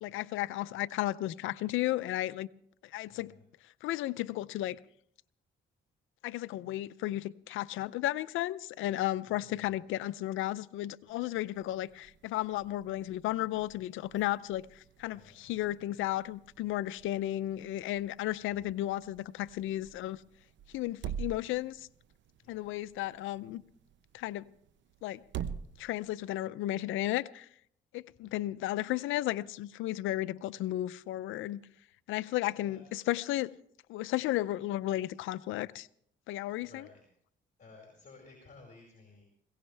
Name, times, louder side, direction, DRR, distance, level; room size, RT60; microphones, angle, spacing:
voice 1, 0.0-2.5 2.8-3.3 3.8-4.8 6.2-20.2 20.7-21.9 22.5-23.6 24.1-24.4 25.0-25.2 25.8-27.5 27.9-31.6 32.1-33.5 33.9-35.9 36.3-36.9, left 15 dB, 90° left, 0.5 m, -34 dB
voice 2, 3.1-3.4 9.3-9.8 15.1-15.5 22.4-22.7 32.5-33.1 36.6-37.0 37.6-39.2, left 3 dB, 40° left, 4.8 m, -56 dB
sound 1, 11.1-26.3, right 8 dB, 70° right, 0.8 m, -47 dB
21.5 x 17.5 x 3.4 m
cardioid pair, 90°, 20 cm